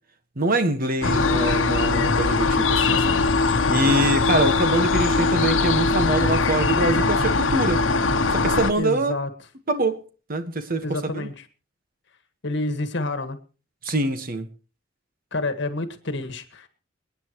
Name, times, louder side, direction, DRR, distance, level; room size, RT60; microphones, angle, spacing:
voice 1, 0.3-3.3 3.7-7.9 8.3-9.1 9.7-10.0 10.3-11.3 13.8-14.5, right 2 dB, 50° right, 1.6 m, -24 dB
sound 1, 1.0-8.7, left 3 dB, 85° left, 1.0 m, -21 dB
voice 2, 1.0-1.4 8.8-9.3 10.8-11.3 12.4-13.4 15.3-16.7, left 2 dB, 65° left, 1.8 m, -28 dB
27.5 x 9.8 x 3.1 m
head